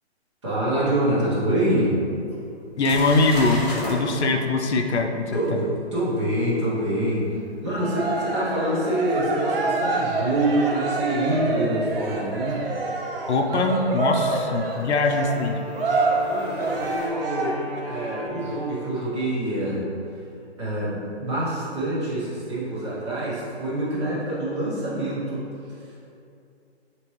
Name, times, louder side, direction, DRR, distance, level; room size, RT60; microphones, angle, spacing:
voice 1, 0.4-2.0 5.3-12.6 16.2-17.6 17.9-19.8 20.6-25.4 25.7-26.1, right 1 dB, 25° right, -9 dB, 1.0 m, -26 dB
sound 1, 1.7-1.8 2.3-2.4 2.8-4.0 9.1-9.2 12.0-12.1 13.8-13.9 15.2-17.1, left 1 dB, 35° left, 0.9 m, -34 dB
voice 2, 2.8-3.6 3.9-5.4 13.3-15.6, left 3 dB, 85° left, 4 dB, 0.6 m, -22 dB
Cheering, 7.7-17.8, right 3 dB, 60° right, 0.6 m, -27 dB
Wind instrument woodwind instrument, 14.9-19.3, left 1 dB, ahead, 0.8 m, -38 dB
4.3 x 2.9 x 3.1 m, 2.6 s
hypercardioid pair, 165°, 33 cm